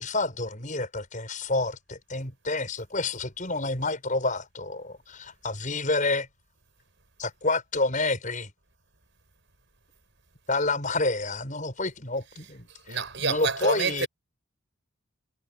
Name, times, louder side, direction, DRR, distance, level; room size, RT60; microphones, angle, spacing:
voice 1, 0.0-6.3 7.2-8.5 10.5-14.1, left 2 dB, 40° left, 7.5 m, -29 dB
voice 2, 12.7-14.1, right 5 dB, 60° right, 7.1 m, -28 dB
head